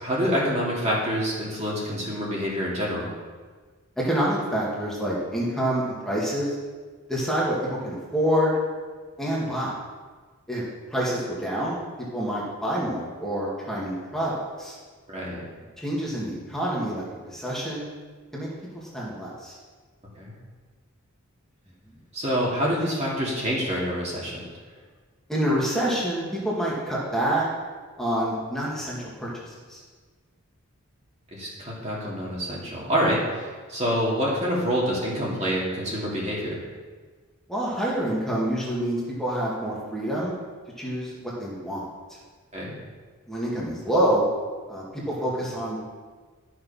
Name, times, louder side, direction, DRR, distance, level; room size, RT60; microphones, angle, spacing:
voice 1, 0.0-3.1 15.1-15.4 20.2-20.3 22.1-24.4 31.3-36.6 42.5-42.8, equal, 30° right, -5 dB, 2.4 m, -27 dB
voice 2, 4.0-6.6 7.1-8.5 9.2-9.7 10.5-10.6 10.9-11.8 12.1-14.8 15.8-17.9 18.3-19.6 25.3-27.5 28.0-29.8 37.5-40.3 40.8-41.8 43.3-44.3 44.7-45.9, right 1 dB, ahead, -6 dB, 2.1 m, -27 dB
12.5 x 6.4 x 5.6 m, 1.4 s
head